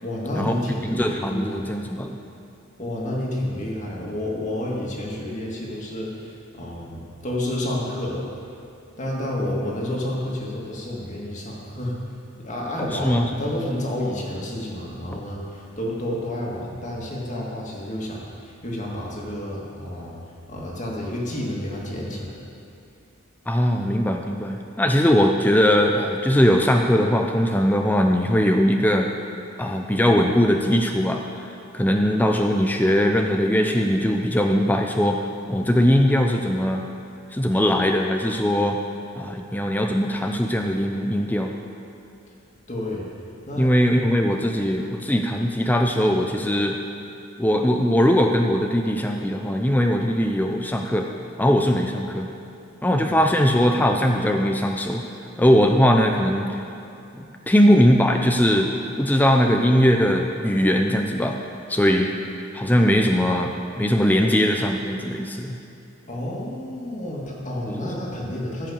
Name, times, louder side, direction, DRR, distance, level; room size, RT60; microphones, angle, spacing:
voice 1, 0.0-1.7 2.8-8.3 9.0-20.1 20.5-22.4 42.7-43.1 43.5-43.7 52.9-53.2 66.1-68.7, left 1 dB, 35° left, -3 dB, 2.2 m, -30 dB
voice 2, 0.9-2.2 12.9-13.3 23.5-29.1 29.6-35.2 35.5-36.9 37.3-38.8 39.1-41.5 43.6-46.8 47.4-51.1 51.4-52.3 52.8-55.0 55.4-56.6 57.1-58.7 59.0-61.4 61.7-62.1 62.5-65.6 67.7-67.9, equal, 10° left, 3 dB, 0.5 m, -20 dB
15.0 x 5.7 x 7.1 m, 2.7 s
head